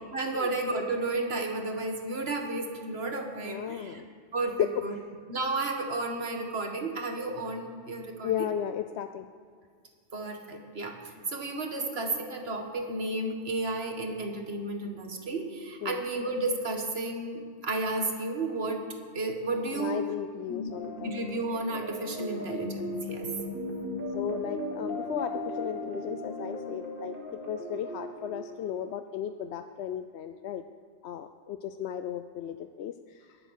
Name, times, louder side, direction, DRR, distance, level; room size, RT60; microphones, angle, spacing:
voice 1, 0.1-4.0 4.3-4.9 5.3-8.5 10.1-18.9 19.1-20.0 20.5-20.7 21.0-23.3, right 2 dB, 60° right, 3 dB, 1.8 m, -32 dB
voice 2, 3.4-4.0 4.6-4.7 8.2-9.3 15.8-16.0 19.7-21.1 22.4-22.5 24.1-27.1 27.5-30.6 31.0-33.4, left 9 dB, 70° left, 8 dB, 0.8 m, -35 dB
sound 1, 20.7-29.3, left 1 dB, 50° left, 2.4 m, -37 dB
21.5 x 7.8 x 6.4 m, 2.1 s
omnidirectional pair, 1.2 m